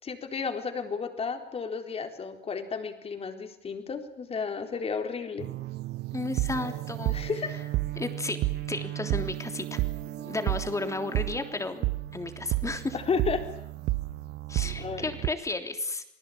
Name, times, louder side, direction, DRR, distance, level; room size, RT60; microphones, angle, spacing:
voice 1, 0.0-5.5 7.1-7.6 12.9-13.4 14.8-15.1, left 5 dB, 35° left, 6 dB, 4.1 m, -32 dB
sound 1, 5.4-15.3, right 18 dB, 80° right, 1.0 m, -32 dB
voice 2, 6.1-7.1 8.0-8.4 8.7-9.8 10.2-12.9 14.5-16.0, left 3 dB, 20° left, 7 dB, 3.3 m, -33 dB
28.5 x 19.5 x 8.8 m, 0.77 s
cardioid pair, 110°, 17 cm